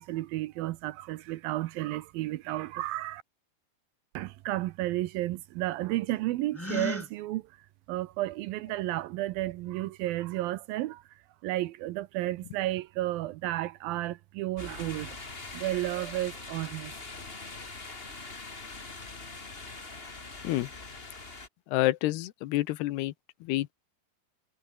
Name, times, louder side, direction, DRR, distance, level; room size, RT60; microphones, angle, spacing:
voice 1, 0.0-3.2 4.1-7.4 7.9-11.0 11.4-15.2 15.5-16.9, right 16 dB, 80° right, 2.3 m, -32 dB
Gasp, 6.5-7.1, left 1 dB, 5° left, 2.6 m, -33 dB
sound 1, 14.6-21.5, left 3 dB, 20° left, 1.8 m, -43 dB
voice 2, 21.7-23.1 23.4-23.7, left 17 dB, 90° left, 3.0 m, -28 dB
omnidirectional pair, 4.6 m